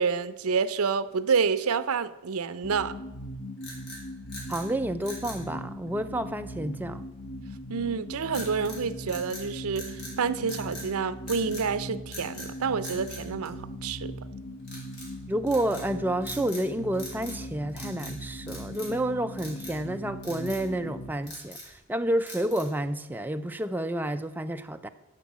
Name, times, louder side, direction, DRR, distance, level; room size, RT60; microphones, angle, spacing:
voice 1, 0.0-2.9 7.7-14.2, right 5 dB, 75° right, 14 dB, 0.6 m, -28 dB
sound 1, 2.6-21.1, equal, 65° left, 1.0 m, -40 dB
sound 2, 3.6-4.7 5.0-5.4 8.3-8.8 9.1-10.2 10.4-10.9 11.3-11.7 12.1-12.5 12.8-14.0 14.6-15.1 15.5-15.9 16.2-16.7 16.9-17.4 17.7-18.2 18.5-19.0 19.4-19.8 20.2-20.6 21.1-21.8 22.3-22.8, left 1 dB, 50° left, 3.1 m, -42 dB
voice 2, 4.5-7.0 15.3-24.9, right 1 dB, 10° right, 8 dB, 0.4 m, -30 dB
11.5 x 5.6 x 7.3 m, 1.1 s
head